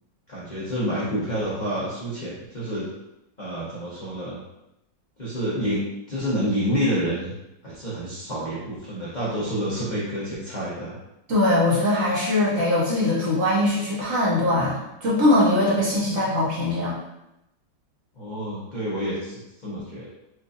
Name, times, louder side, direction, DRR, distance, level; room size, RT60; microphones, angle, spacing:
voice 1, 0.3-2.9 3.4-4.4 5.2-7.3 7.6-11.0 18.2-20.1, equal, 70° left, -8 dB, 0.4 m, -28 dB
voice 2, 11.3-17.0, left 1 dB, 55° right, -6 dB, 1.0 m, -21 dB
4.3 x 2.5 x 2.5 m, 0.89 s
omnidirectional pair, 2.0 m